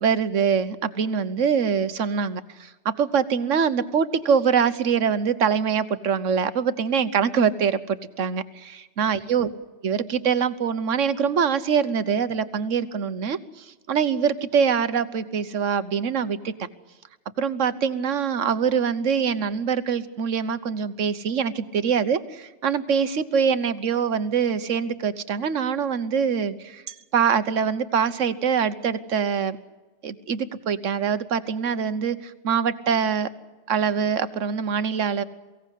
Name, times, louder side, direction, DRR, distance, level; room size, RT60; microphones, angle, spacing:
voice 1, 0.0-9.5 9.8-16.5 17.4-29.6 30.0-33.3 33.7-35.2, right 6 dB, 85° right, 13 dB, 1.4 m, -24 dB
23.0 x 17.0 x 8.3 m, 1.2 s
omnidirectional pair, 1.3 m